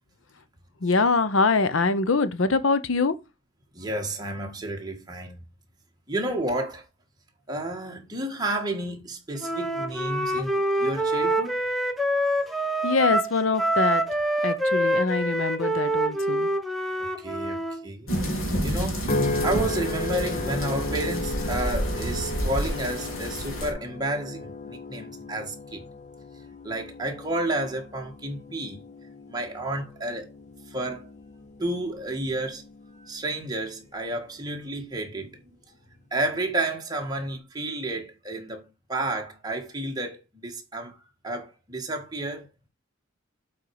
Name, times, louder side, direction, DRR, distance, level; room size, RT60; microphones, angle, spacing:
voice 1, 0.8-3.1 12.8-14.0 14.4-16.5, left 4 dB, 70° left, 0.8 m, -24 dB
voice 2, 3.7-5.4 6.1-6.8 7.5-11.6 17.2-17.6 17.8-18.1 18.6-19.1 19.4-25.8 26.6-28.8 29.3-30.3 30.7-31.1 31.6-32.6 33.0-35.4 36.1-38.6 38.9-41.0 41.2-42.5, right 1 dB, 20° right, 1.6 m, -31 dB
Wind instrument woodwind instrument, 9.4-17.8, right 1 dB, ahead, 0.8 m, -26 dB
sound 1, 18.1-23.7, equal, 85° left, 3.0 m, -29 dB
sound 2, 19.1-33.6 34.1-34.5, left 2 dB, 35° left, 0.5 m, -35 dB
7.8 x 4.5 x 4.8 m
head